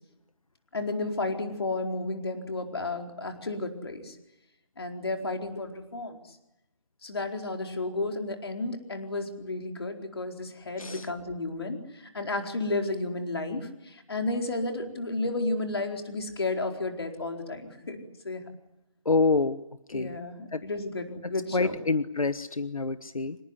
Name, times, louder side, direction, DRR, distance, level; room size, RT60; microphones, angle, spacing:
voice 1, 0.7-4.2 4.8-6.2 7.0-18.4 19.9-21.7, left 2 dB, 50° left, 4 dB, 4.4 m, -32 dB
voice 2, 19.0-19.6 19.9-20.2 20.5-20.6 21.5-23.4, left 3 dB, 85° left, 13 dB, 1.3 m, -27 dB
26.0 x 20.0 x 9.8 m, 0.91 s
figure-of-eight pair, 170°, 17 cm